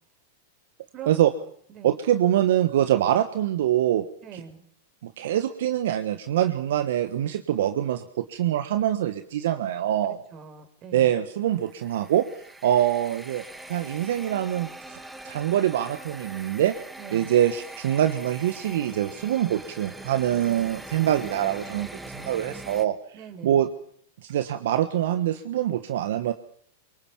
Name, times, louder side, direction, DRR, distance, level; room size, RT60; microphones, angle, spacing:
voice 1, 1.8-4.0 4.3-4.4 5.0-10.2 10.9-12.2 12.6-15.0 15.2-16.7 17.1-23.0 23.4-23.7 24.2-26.3, right 11 dB, 70° right, 9 dB, 1.3 m, -24 dB
voice 2, 4.2-4.6 10.0-11.1 17.0-17.3 23.1-23.6, right 7 dB, 35° right, 9 dB, 4.4 m, -42 dB
sound 1, 11.6-22.9, right 2 dB, 10° right, 2.4 m, -42 dB
24.0 x 23.5 x 7.2 m, 0.63 s
hypercardioid pair, 105°, 0 cm